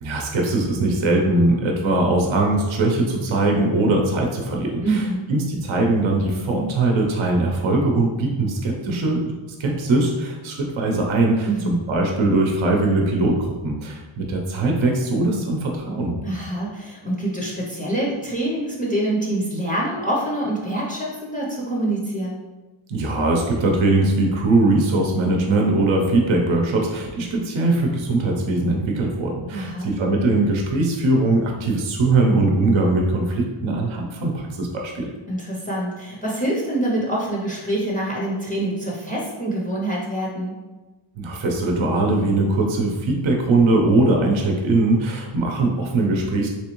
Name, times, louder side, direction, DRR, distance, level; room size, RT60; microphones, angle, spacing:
voice 1, 0.0-5.0 5.3-9.3 9.6-16.2 22.9-35.1 41.2-46.5, right 2 dB, 65° right, 1 dB, 0.7 m, -21 dB
voice 2, 4.8-5.3 11.4-11.8 16.2-22.4 29.5-29.9 35.3-40.5, right 1 dB, 15° left, -5 dB, 0.5 m, -25 dB
3.5 x 3.0 x 3.0 m, 1.2 s
wide cardioid pair, 130°, 50 cm